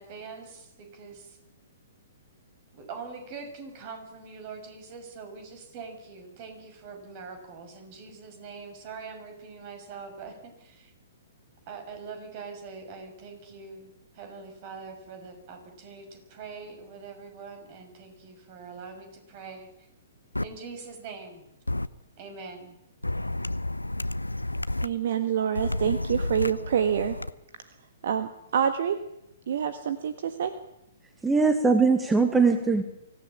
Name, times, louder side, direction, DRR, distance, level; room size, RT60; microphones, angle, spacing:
voice 1, 0.0-1.4 2.7-10.9 11.7-19.9 20.4-21.5 22.2-22.8, right 5 dB, 40° right, 6 dB, 6.2 m, -43 dB
sound 1, 20.3-20.4 21.7-21.9 23.0-24.9 25.5-27.3, left 2 dB, 90° left, 0.7 m, -30 dB
voice 2, 24.8-27.2 28.0-29.0 29.5-30.5, right 8 dB, 55° right, 10 dB, 1.6 m, -27 dB
voice 3, 31.2-32.8, right 4 dB, 10° right, 8 dB, 1.6 m, -21 dB
24.5 x 15.5 x 8.8 m, 0.85 s
figure-of-eight pair, 115°, 0 cm